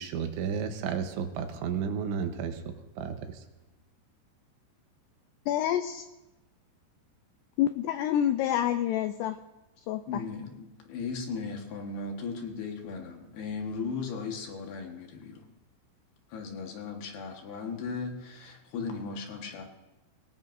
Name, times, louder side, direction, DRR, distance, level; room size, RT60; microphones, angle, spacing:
voice 1, 0.0-3.5, right 7 dB, 80° right, 6 dB, 3.4 m, -33 dB
voice 2, 5.5-6.1 7.6-9.4 9.9-10.2, left 11 dB, 85° left, 8 dB, 2.4 m, -27 dB
voice 3, 10.1-15.4 16.3-19.6, left 4 dB, 65° left, 2 dB, 3.1 m, -37 dB
24.0 x 18.5 x 2.6 m, 1.0 s
omnidirectional pair, 5.5 m